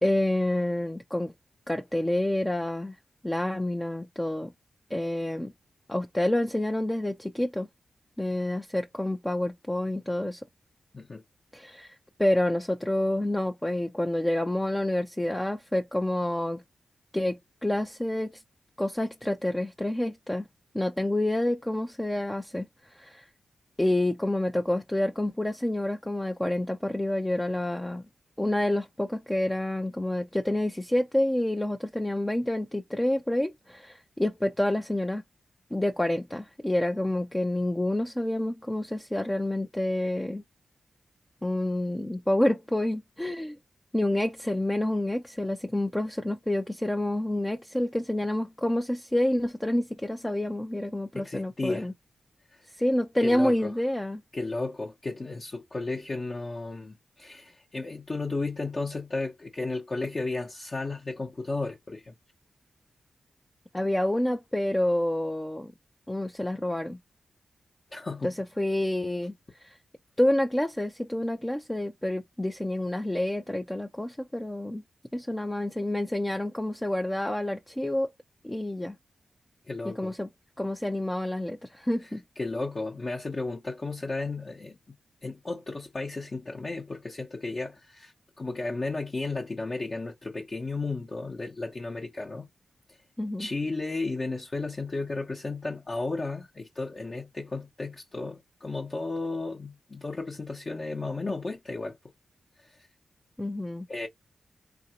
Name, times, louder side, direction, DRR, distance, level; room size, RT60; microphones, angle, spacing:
voice 1, 0.0-1.3 1.7-3.0 3.2-4.5 4.9-5.5 5.9-7.7 8.2-10.4 11.5-16.6 17.1-18.4 18.8-20.5 20.7-23.3 23.8-28.0 28.4-35.2 35.7-40.4 41.4-43.6 43.9-51.9 52.8-54.2 63.7-65.7 66.1-67.0 68.2-69.3 69.6-69.8 70.2-74.8 75.1-78.1 78.4-79.0 80.0-80.3 80.6-82.2 93.2-93.5 103.4-103.8, left 1 dB, 10° left, 0.4 m, -28 dB
voice 2, 51.1-51.9 52.5-52.6 53.2-53.7 54.3-62.1 67.9-68.3 79.7-80.1 82.4-85.0 85.2-92.5 92.9-93.0 93.4-101.9 102.6-102.8 103.9-104.1, left 3 dB, 40° left, 0.8 m, -34 dB
3.6 x 2.6 x 2.8 m
cardioid pair, 70°, 0 cm